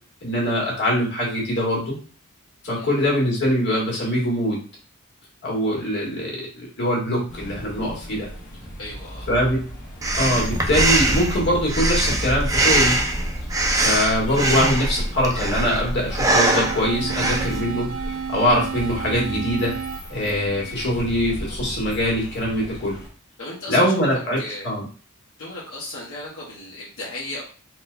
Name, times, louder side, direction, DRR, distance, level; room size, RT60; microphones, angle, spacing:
voice 1, 0.2-2.0 2.6-4.6 5.4-8.3 9.3-9.6 10.1-13.0 13.8-17.9 18.3-19.7 20.1-23.0 23.7-24.4 24.6-24.8, equal, 55° left, -3 dB, 1.7 m, -23 dB
sound 1, 7.3-23.1, equal, 35° left, 1.5 m, -35 dB
voice 2, 8.8-9.3 23.4-24.7 25.4-27.4, left 2 dB, 75° left, -6 dB, 1.2 m, -35 dB
Breathing, 10.0-17.6, right 2 dB, 15° right, 0.5 m, -22 dB
sound 2, 16.3-21.3, right 6 dB, 70° right, 0.5 m, -32 dB
4.2 x 3.9 x 2.2 m, 0.40 s
head